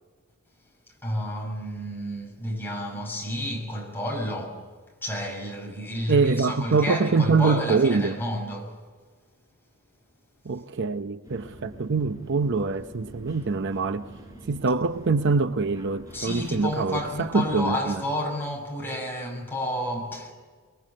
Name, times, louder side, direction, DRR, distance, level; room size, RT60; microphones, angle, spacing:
voice 1, 1.0-4.6 5.0-8.8 16.1-20.3, left 1 dB, 10° left, 6.1 m, -31 dB
voice 2, 6.1-8.1 10.5-14.1 14.5-18.0, right 4 dB, 55° right, 0.7 m, -24 dB
sound 1, 11.2-17.8, right 1 dB, 15° right, 4.8 m, -45 dB
24.0 x 22.5 x 7.6 m
head